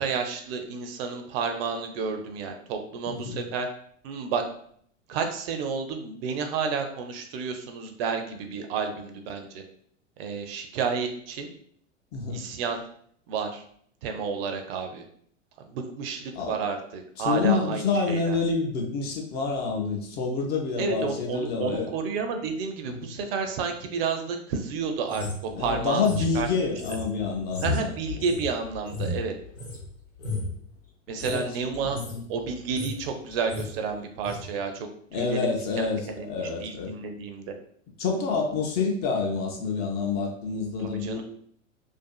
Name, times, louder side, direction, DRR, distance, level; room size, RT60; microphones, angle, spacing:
voice 1, 0.0-3.7 4.0-4.4 5.1-9.6 10.2-11.5 12.3-12.8 13.3-13.6 14.0-15.0 15.6-18.4 20.8-25.3 25.6-26.1 26.3-26.5 27.6-29.3 31.1-32.0 32.3-36.3 36.6-37.5 40.8-41.2, right 5 dB, 50° right, 5 dB, 0.5 m, -31 dB
voice 2, 3.1-3.4 12.1-12.4 16.4-16.6 17.2-21.9 22.9-23.1 25.5-28.0 31.2-31.4 31.8-32.2 35.1-36.9 38.0-41.2, left 4 dB, 25° left, 1 dB, 0.5 m, -28 dB
sound 1, 25.1-29.8 30.2-30.6 31.1-31.4 31.7-32.2 32.5-33.1 33.3-33.7 34.2-34.4, left 3 dB, 80° left, 0.9 m, -34 dB
2.5 x 2.4 x 2.3 m, 0.63 s
figure-of-eight pair, 90°, 38 cm